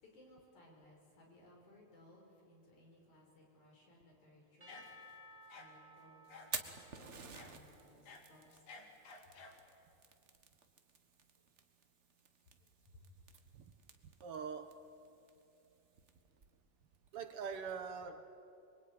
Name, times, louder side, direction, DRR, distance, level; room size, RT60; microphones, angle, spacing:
voice 1, 0.0-4.8 5.5-8.9 12.9-13.0, left 1 dB, 85° left, 0 dB, 6.6 m, -63 dB
Percussion / Church bell, 4.6-8.8, equal, 20° right, 4.5 m, -60 dB
sound 1, 4.7-5.1 5.5-5.7 6.3-6.6 7.3-7.5 7.9-9.6, left 4 dB, 60° left, 3.4 m, -54 dB
Fire, 6.3-17.7, right 5 dB, 40° right, 1.1 m, -52 dB
voice 2, 14.2-14.8 17.1-18.3, right 6 dB, 60° right, 8 dB, 1.8 m, -43 dB
25.5 x 23.0 x 9.6 m, 2.7 s
omnidirectional pair, 3.3 m